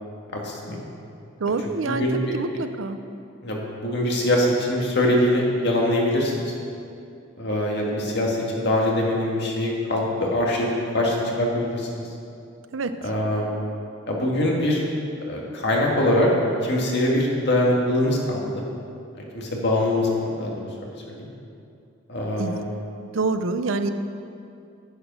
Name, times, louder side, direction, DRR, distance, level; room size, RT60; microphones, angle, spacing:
voice 1, 0.4-0.8 1.8-2.3 3.4-6.5 7.4-12.1 13.0-13.5 14.1-14.8 15.3-16.3 16.6-18.6 19.1-20.5 20.8-21.3 22.1-22.6, left 1 dB, 60° left, -2 dB, 2.0 m, -23 dB
voice 2, 1.4-3.0 12.7-12.9 22.4-22.6 23.0-23.9, right 3 dB, 85° right, 9 dB, 0.6 m, -26 dB
10.0 x 8.1 x 6.3 m, 2.5 s
head